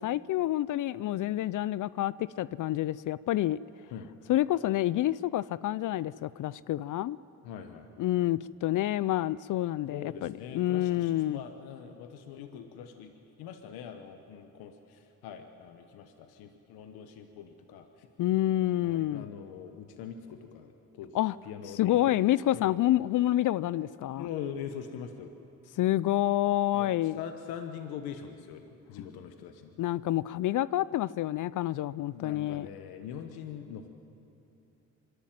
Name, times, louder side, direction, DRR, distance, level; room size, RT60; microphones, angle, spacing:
voice 1, 0.0-3.6 4.3-7.2 8.0-11.4 18.2-19.3 21.1-21.3 21.8-24.3 25.8-27.2 29.8-32.7, left 14 dB, 60° left, 19 dB, 0.4 m, -28 dB
voice 2, 7.4-7.9 9.9-13.1 13.4-18.1 18.8-21.1 21.4-22.2 22.5-22.8 24.2-25.3 26.7-26.9 27.1-29.7 32.1-33.9, left 8 dB, 85° left, 7 dB, 1.1 m, -42 dB
24.5 x 11.5 x 9.3 m, 2.8 s
supercardioid pair, 55°, 36 cm